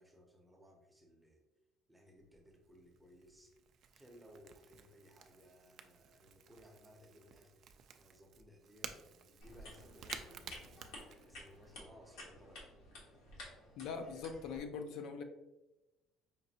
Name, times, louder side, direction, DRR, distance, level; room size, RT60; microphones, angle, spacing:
voice 1, 0.0-1.4 1.9-3.5 3.9-7.6 7.9-10.7 11.2-12.7, equal, 5° right, 1 dB, 0.7 m, -61 dB
Crackle / Crack, 2.2-11.7, right 8 dB, 50° right, 0.3 m, -54 dB
sound 1, 9.4-14.6, left 1 dB, 90° left, 1.3 m, -53 dB
voice 2, 13.8-15.2, left 5 dB, 65° left, 6 dB, 0.4 m, -42 dB
5.1 x 2.6 x 2.8 m, 1.0 s
cardioid pair, 140°, 0 cm